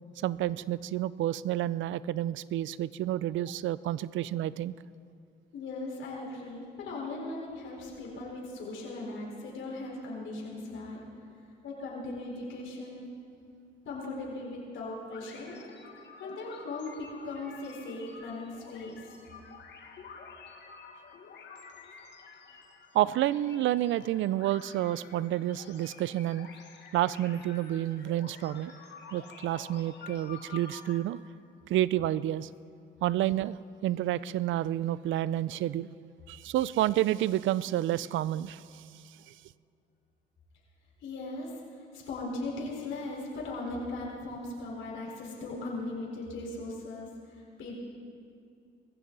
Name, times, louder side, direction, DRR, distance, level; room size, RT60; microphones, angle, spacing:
voice 1, 0.2-4.7 22.9-26.5 26.9-28.7 29.1-31.2 31.7-32.5 33.0-33.6 33.8-35.9 36.3-38.8 39.3-39.4, right 13 dB, 75° right, 18 dB, 0.4 m, -29 dB
voice 2, 5.5-11.0 11.6-13.0 13.8-15.6 16.2-19.0 41.0-41.5 41.9-47.1 47.3-47.7, left 2 dB, 80° left, -3 dB, 4.4 m, -38 dB
sound 1, 15.0-31.0, left 5 dB, 65° left, 1.6 m, -49 dB
21.0 x 15.5 x 4.0 m, 2.4 s
cardioid pair, 90°, 20 cm